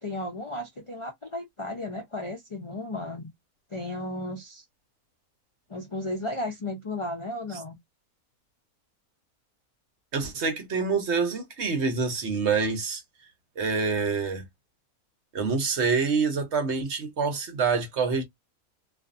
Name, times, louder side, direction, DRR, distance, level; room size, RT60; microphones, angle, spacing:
voice 1, 0.0-3.3 3.7-4.6 5.7-7.8, left 1 dB, 45° left, 0.3 m, -34 dB
voice 2, 10.1-13.0 13.6-14.4 15.3-18.2, right 5 dB, 55° right, 1.0 m, -26 dB
2.5 x 2.5 x 2.4 m
omnidirectional pair, 1.5 m